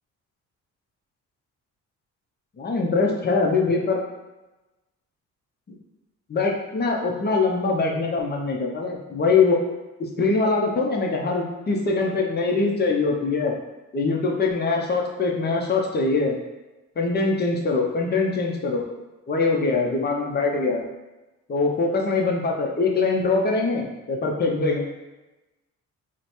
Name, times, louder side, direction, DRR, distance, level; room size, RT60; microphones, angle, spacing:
voice 1, 2.6-4.0 6.3-9.6 10.0-13.5 13.9-16.4 17.0-18.8 19.3-20.9 21.5-24.9, left 3 dB, 35° left, 0 dB, 0.7 m, -23 dB
3.1 x 2.1 x 4.1 m, 1.1 s
cardioid pair, 90°, 30 cm